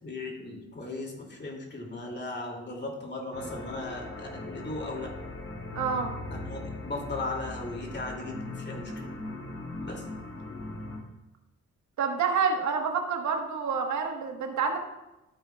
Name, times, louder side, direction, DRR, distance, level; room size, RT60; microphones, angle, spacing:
voice 1, 0.0-5.1 6.3-9.1 9.8-10.0, left 2 dB, 35° left, 1 dB, 2.6 m, -37 dB
sound 1, 3.3-11.0, left 2 dB, 65° left, 3.3 m, -39 dB
voice 2, 5.7-6.1 12.0-14.8, right 5 dB, 70° right, 3 dB, 1.4 m, -28 dB
13.0 x 8.5 x 2.4 m, 0.99 s
cardioid pair, 90°, 30 cm